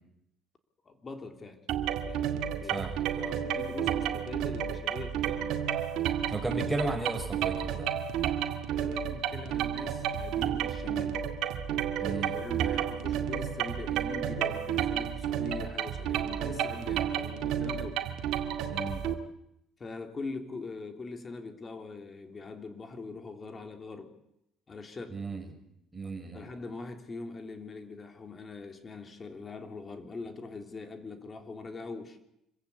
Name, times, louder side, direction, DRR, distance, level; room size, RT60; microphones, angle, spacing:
voice 1, 0.8-1.7 2.0-2.9 3.4-5.7 8.7-11.2 12.0-18.0 18.6-18.7 19.8-24.1 24.7-25.2 26.3-32.2, left 3 dB, 35° left, 6 dB, 3.4 m, -42 dB
sound 1, 1.7-19.1, right 9 dB, 75° right, 2.0 m, -31 dB
voice 2, 2.7-3.4 6.3-7.9 12.0-12.4 18.7-19.0 25.1-25.5 25.9-26.5, right 2 dB, 10° right, 4 dB, 5.8 m, -35 dB
26.0 x 15.5 x 8.5 m, 0.80 s
supercardioid pair, 80°, 0 cm